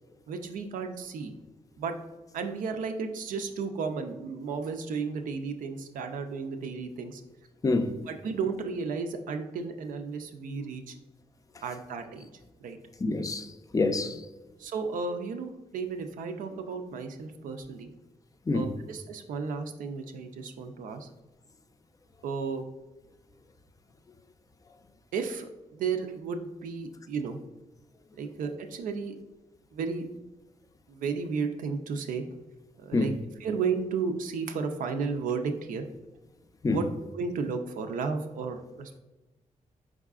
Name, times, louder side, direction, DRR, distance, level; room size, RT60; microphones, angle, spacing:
voice 1, 0.3-1.3 1.8-1.9 2.3-7.2 8.1-11.0 11.6-12.3 12.6-12.8 14.6-17.9 18.5-21.1 22.2-22.6 25.1-27.4 28.1-29.2 29.7-30.1 30.9-32.2 32.8-33.1 33.4-35.8 36.7-36.9 37.1-39.0, right 5 dB, 90° right, 0.5 m, -33 dB
voice 2, 7.6-7.9 13.0-14.2 18.5-18.7 32.9-33.2 36.6-36.8, left 3 dB, 25° left, 0.4 m, -27 dB
4.7 x 3.6 x 2.3 m
cardioid pair, 75°, 13 cm